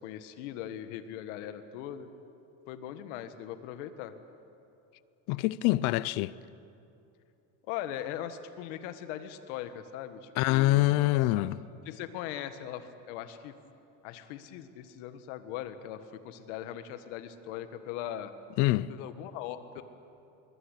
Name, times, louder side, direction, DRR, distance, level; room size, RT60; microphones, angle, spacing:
voice 1, 0.0-2.1 2.7-4.1 7.7-11.5 11.8-13.5 14.0-18.3 18.9-19.8, left 11 dB, 70° left, 1.7 m, -40 dB
voice 2, 5.3-6.3 10.4-11.6 18.6-18.9, left 17 dB, 50° left, 0.5 m, -25 dB
26.0 x 22.5 x 8.3 m
cardioid pair, 180°, 37 cm